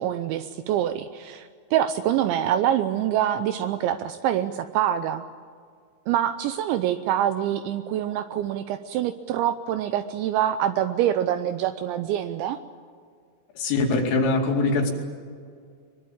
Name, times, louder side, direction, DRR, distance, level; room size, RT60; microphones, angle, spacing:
voice 1, 0.0-5.2 6.1-12.6, right 11 dB, 80° right, 10 dB, 2.7 m, -25 dB
voice 2, 13.6-14.9, left 3 dB, 75° left, 2 dB, 5.2 m, -22 dB
22.5 x 22.0 x 8.8 m, 2.1 s
omnidirectional pair, 5.9 m